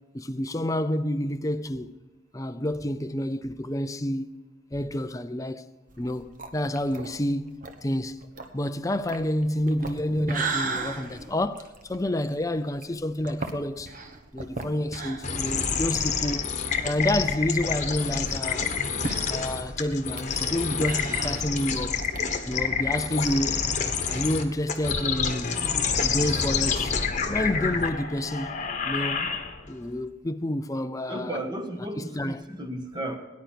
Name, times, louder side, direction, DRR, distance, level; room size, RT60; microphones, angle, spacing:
voice 1, 0.1-1.9 2.3-4.3 4.7-5.7 6.0-8.2 8.5-13.9 14.3-16.5 16.8-18.7 19.3-21.9 22.5-23.6 24.1-25.6 26.0-27.0 27.3-28.6 28.8-29.3 29.7-31.4 32.0-32.4, left 1 dB, 15° left, 0.5 m, -29 dB
sound 1, 5.9-16.1 16.5-16.6 16.9-17.0 17.7-22.2, right 3 dB, 40° right, 1.3 m, -37 dB
sound 2, 15.2-29.8, left 6 dB, 35° left, 1.2 m, -28 dB
voice 2, 31.1-33.2, right 1 dB, 20° right, 1.5 m, -34 dB
18.5 x 10.5 x 4.6 m
head